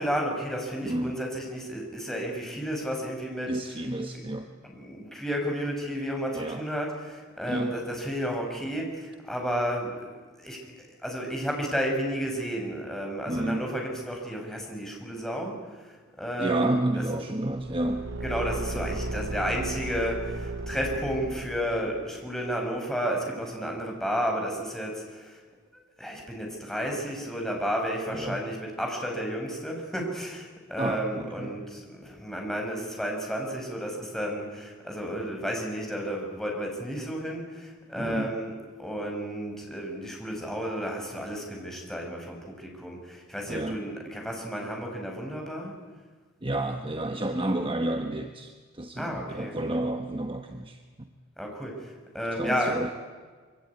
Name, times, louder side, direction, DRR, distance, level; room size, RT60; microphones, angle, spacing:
voice 1, 0.0-3.6 4.6-10.1 10.4-10.6 11.0-15.6 16.2-16.8 17.1-17.2 18.2-25.3 26.0-38.5 38.8-45.8 49.0-49.6 51.4-51.8 52.1-52.8, equal, ahead, 0 dB, 5.5 m, -32 dB
voice 2, 0.8-1.2 3.5-4.5 6.3-6.6 7.5-7.8 13.3-13.6 16.4-18.1 28.1-28.4 30.7-31.5 37.9-38.3 43.5-43.8 46.4-51.1 52.3-52.9, right 1 dB, 25° right, 5 dB, 1.2 m, -30 dB
Car / Engine, 17.5-22.0, right 2 dB, 60° right, 0.8 m, -35 dB
25.0 x 24.0 x 9.5 m, 1.5 s
head